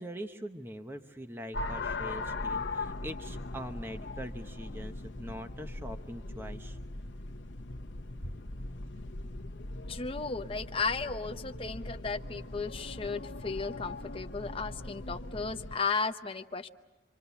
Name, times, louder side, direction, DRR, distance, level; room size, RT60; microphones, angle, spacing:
voice 1, 0.0-6.8, equal, 10° right, 6 dB, 0.9 m, -43 dB
sound 1, 1.5-15.8, left 2 dB, 75° left, 1.0 m, -40 dB
voice 2, 9.9-16.7, left 4 dB, 30° left, 7 dB, 0.8 m, -35 dB
26.5 x 25.5 x 7.0 m, 1.2 s
head